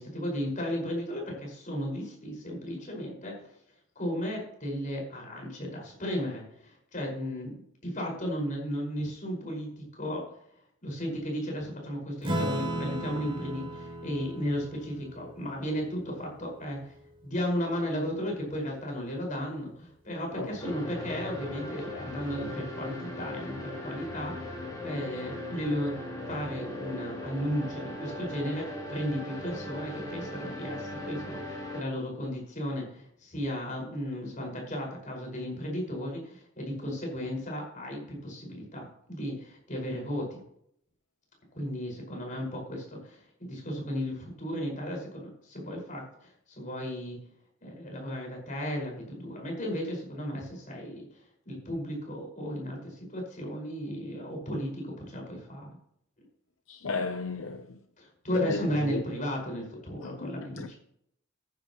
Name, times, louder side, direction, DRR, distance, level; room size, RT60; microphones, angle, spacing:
voice 1, 0.0-3.4 4.0-10.2 10.8-16.9 17.2-40.4 41.5-47.2 47.6-55.8 58.0-60.8, equal, 40° left, 5.4 m, -35 dB
Acoustic guitar / Strum, 12.2-17.1, right 1 dB, 25° right, 3.4 m, -36 dB
sound 1, 20.6-31.8, left 1 dB, 20° left, 3.3 m, -39 dB
voice 2, 56.7-57.8 58.3-58.6 58.9-59.0 60.0-60.7, left 3 dB, 75° left, 0.8 m, -34 dB
15.0 x 10.5 x 3.1 m
head